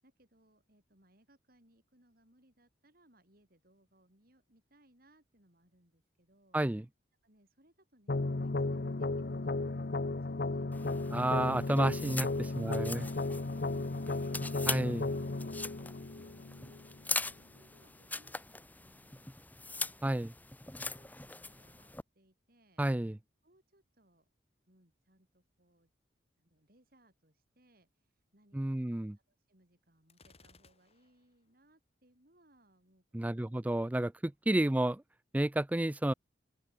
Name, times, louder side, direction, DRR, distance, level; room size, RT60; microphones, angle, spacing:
voice 1, 0.0-6.6 7.2-11.2 12.1-12.2 12.6-14.4 15.6-17.0 17.3-20.0 20.6-22.8 23.4-24.3 24.7-25.9 26.4-33.6 34.7-34.8, right 1 dB, 50° right, 7.6 m, -68 dB
voice 2, 6.5-6.8 11.1-12.3 12.6-13.0 14.7-15.1 20.0-20.3 22.8-23.2 28.5-29.2 33.1-35.0 35.3-36.1, right 1 dB, 10° right, 0.3 m, -31 dB
sound 1, 8.1-17.1, left 2 dB, 55° left, 0.8 m, -35 dB
sound 2, 10.7-22.0, left 3 dB, 10° left, 1.6 m, -42 dB
Gunshot gunfire, 30.1-31.3, left 3 dB, 35° left, 5.3 m, -62 dB
open air
head